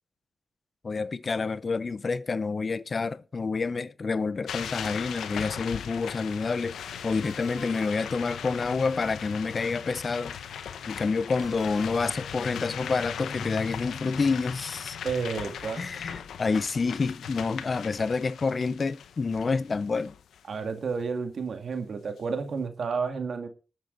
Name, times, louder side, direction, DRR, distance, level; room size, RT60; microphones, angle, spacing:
voice 1, 0.8-6.8 7.0-10.3 10.9-15.0 15.8-20.1, left 4 dB, 50° left, 0.6 m, -28 dB
sound 1, 4.5-20.4, left 8 dB, 85° left, 0.8 m, -39 dB
Ringtone, 7.2-8.9 11.4-13.1, equal, 15° right, 3.5 m, -50 dB
voice 2, 15.0-15.9 20.5-23.5, right 5 dB, 70° right, 2.1 m, -31 dB
18.5 x 7.4 x 3.9 m
supercardioid pair, 45°, 0 cm